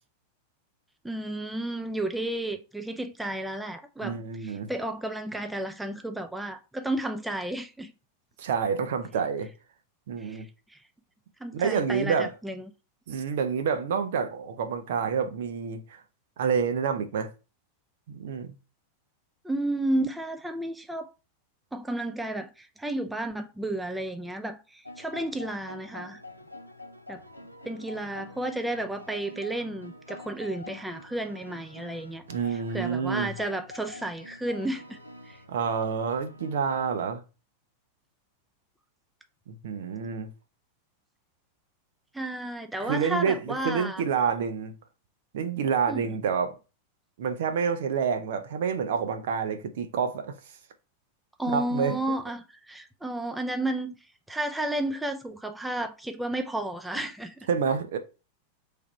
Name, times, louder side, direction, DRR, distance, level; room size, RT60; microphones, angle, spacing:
voice 1, 1.0-7.9 10.2-10.8 11.4-12.7 19.4-21.1 21.7-26.2 27.1-27.2 27.6-32.2 32.5-35.0 35.3-35.4 42.1-44.0 45.9-46.1 51.4-53.9 54.3-57.3, right 1 dB, 5° right, 0.4 m, -32 dB
voice 2, 4.0-4.7 8.4-9.5 10.1-10.5 11.5-12.3 13.1-16.0 16.4-17.3 18.1-18.5 32.3-33.3 35.5-37.2 39.5-40.3 42.8-44.7 45.3-46.6 47.2-50.3 51.5-52.0 57.5-58.0, right 6 dB, 55° right, 0.6 m, -28 dB
sound 1, 24.8-37.0, left 2 dB, 90° left, 0.4 m, -46 dB
3.3 x 2.4 x 4.2 m
figure-of-eight pair, 90°, 0 cm